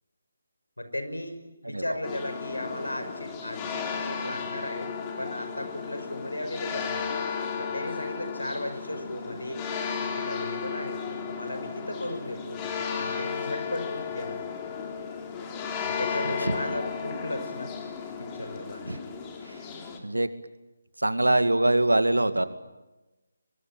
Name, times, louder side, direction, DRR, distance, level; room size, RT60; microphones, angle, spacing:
voice 1, 0.8-7.2 7.6-9.6 10.0-12.6 13.0-14.4 15.8-17.7 18.2-18.9, left 1 dB, 85° left, 8 dB, 5.8 m, -36 dB
sound 1, 2.0-20.0, left 6 dB, 20° left, 3.5 m, -34 dB
voice 2, 21.0-22.5, right 1 dB, 85° right, 10 dB, 2.2 m, -23 dB
23.5 x 23.5 x 9.0 m, 1.1 s
figure-of-eight pair, 155°, 0 cm